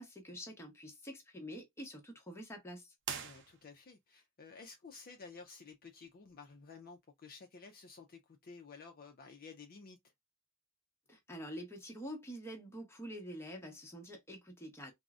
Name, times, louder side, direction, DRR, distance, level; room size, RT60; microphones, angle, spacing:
voice 1, 0.0-2.9 11.1-14.9, equal, 10° left, 0.8 m, -47 dB
sound 1, 3.0-4.0, right 7 dB, 55° right, 0.5 m, -44 dB
voice 2, 3.2-10.0, left 4 dB, 40° left, 0.4 m, -53 dB
3.7 x 2.0 x 2.4 m
head